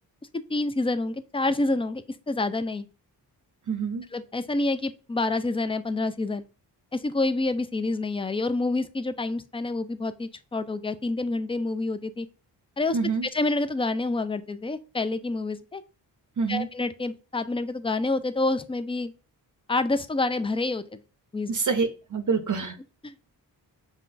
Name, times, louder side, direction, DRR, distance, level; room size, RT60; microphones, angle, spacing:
voice 1, 0.5-2.9 4.1-6.5 6.9-12.3 12.8-15.8 16.5-19.1 19.7-21.0 21.3-21.5 23.0-23.1, left 2 dB, 15° left, 12 dB, 0.4 m, -28 dB
voice 2, 3.7-4.0 12.9-13.3 16.4-16.7 21.5-22.7, right 5 dB, 45° right, 7 dB, 0.6 m, -26 dB
5.6 x 2.2 x 2.6 m, 0.34 s
cardioid pair, 50°, 43 cm